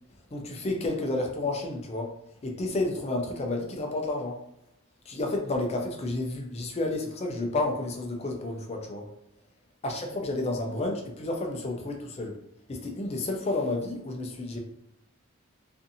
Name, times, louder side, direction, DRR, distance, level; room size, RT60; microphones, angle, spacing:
voice 1, 0.3-2.1 2.4-4.4 5.1-9.1 9.8-12.4 12.7-14.6, left 2 dB, 30° left, 2 dB, 0.4 m, -31 dB
2.5 x 2.5 x 2.6 m, 0.78 s
head